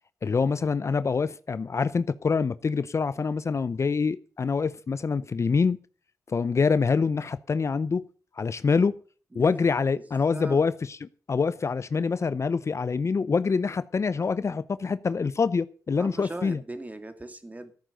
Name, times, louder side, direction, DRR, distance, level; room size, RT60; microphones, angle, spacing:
voice 1, 0.2-5.8 6.3-8.0 8.4-9.0 9.3-16.6, left 5 dB, 50° left, 0.6 m, -25 dB
voice 2, 10.3-10.6 14.4-14.6 16.0-17.7, right 2 dB, 25° right, 2.3 m, -39 dB
14.5 x 8.9 x 6.6 m
cardioid pair, 70°, 6 cm